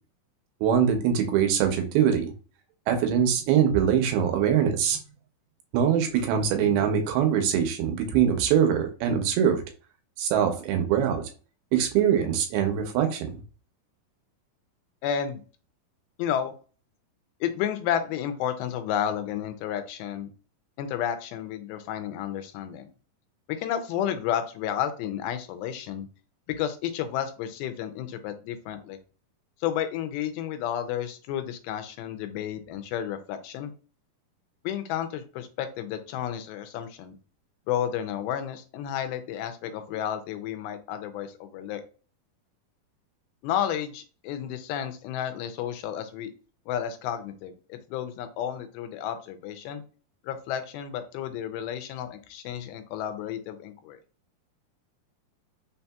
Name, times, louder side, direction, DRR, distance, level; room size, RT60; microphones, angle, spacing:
voice 1, 0.6-2.3 2.9-5.0 5.7-9.6 10.2-11.2 11.7-13.3, right 8 dB, 85° right, 5 dB, 2.6 m, -23 dB
voice 2, 15.0-15.4 16.2-16.5 17.4-20.3 20.8-22.9 23.5-26.1 26.6-29.0 29.6-33.7 34.6-37.1 37.7-41.8 43.4-46.3 46.7-49.8 50.2-54.0, left 10 dB, 85° left, 9 dB, 2.4 m, -31 dB
5.8 x 2.7 x 2.3 m, 0.37 s
omnidirectional pair, 4.3 m